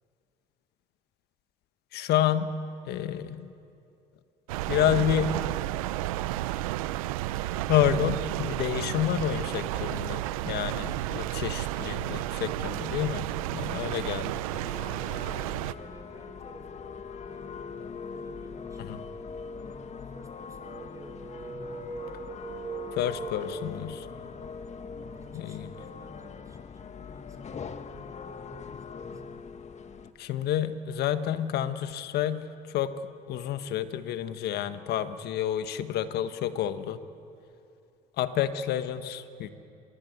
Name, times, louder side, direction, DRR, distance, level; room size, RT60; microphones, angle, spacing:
voice 1, 1.9-2.5 2.8-3.5 4.7-5.3 7.7-13.3 13.5-14.4 18.8-19.0 22.9-24.1 25.3-25.7 30.2-32.9 33.3-37.0 38.2-39.5, left 10 dB, 65° left, 10 dB, 1.5 m, -29 dB
sound 1, 4.5-15.7, right 15 dB, 90° right, 0.6 m, -32 dB
sound 2, 14.5-30.1, left 6 dB, 40° left, 1.5 m, -42 dB
voice 2, 15.2-17.0 17.3-19.0 19.6-22.1 24.1-24.4 25.0-29.3, right 1 dB, 20° right, 5 dB, 5.3 m, -51 dB
sound 3, 20.5-24.1, right 3 dB, 35° right, 3.3 m, -40 dB
25.0 x 22.0 x 8.2 m, 2.6 s
hypercardioid pair, 65°, 18 cm